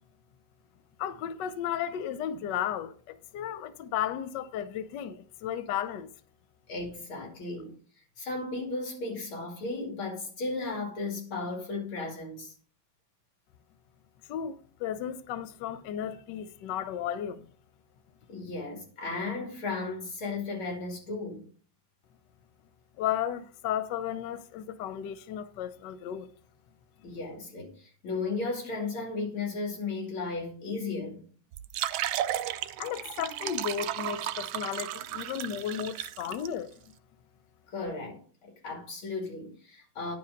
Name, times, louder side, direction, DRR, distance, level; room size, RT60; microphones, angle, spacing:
voice 1, 1.0-6.1 14.3-17.4 23.0-26.3 32.8-36.7, left 9 dB, 70° left, 1.2 m, -34 dB
voice 2, 6.7-7.7 8.2-12.5 18.3-21.4 27.0-31.2 37.7-40.1, left 3 dB, 85° left, 3.6 m, -35 dB
sound 1, 31.5-36.5, right 12 dB, 75° right, 1.3 m, -34 dB
10.5 x 4.9 x 5.2 m
omnidirectional pair, 2.2 m